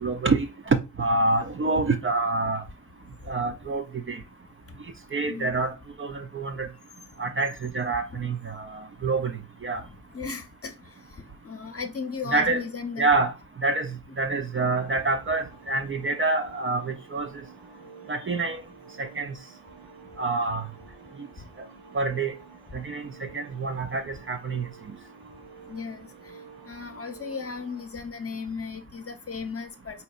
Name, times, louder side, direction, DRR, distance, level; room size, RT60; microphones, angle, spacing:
voice 1, 0.0-2.6 3.3-4.2 5.1-5.7 6.0-6.7 7.2-9.3 9.6-9.8 12.3-12.6 13.0-13.3 13.6-17.3 18.1-18.6 19.0-19.3 20.2-20.7 21.9-22.3 22.7-23.1 23.3-24.6, right 3 dB, 35° right, 0.5 m, -26 dB
voice 2, 5.2-5.6 8.1-8.2 9.0-9.1 10.1-10.7 11.4-13.1 25.7-26.1 26.6-30.0, left 5 dB, 40° left, 0.8 m, -35 dB
sound 1, 14.7-27.9, right 5 dB, 90° right, 0.6 m, -50 dB
4.2 x 2.7 x 2.4 m
cardioid pair, 50°, 37 cm